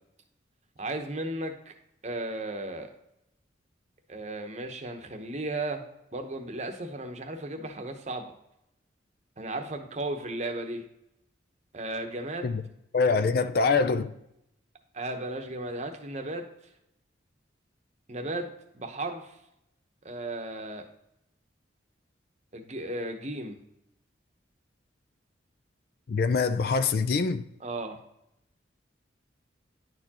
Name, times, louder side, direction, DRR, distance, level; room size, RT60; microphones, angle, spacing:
voice 1, 0.8-1.7 2.0-2.9 4.1-5.8 6.1-8.3 9.4-10.8 11.7-12.6 14.9-16.5 18.1-18.5 18.7-19.4 20.0-20.8 22.5-23.6 27.6-28.0, right 2 dB, 35° right, 5 dB, 0.8 m, -35 dB
voice 2, 12.9-14.1 26.1-27.4, left 4 dB, 50° left, 11 dB, 0.4 m, -24 dB
10.5 x 4.4 x 2.9 m, 0.81 s
head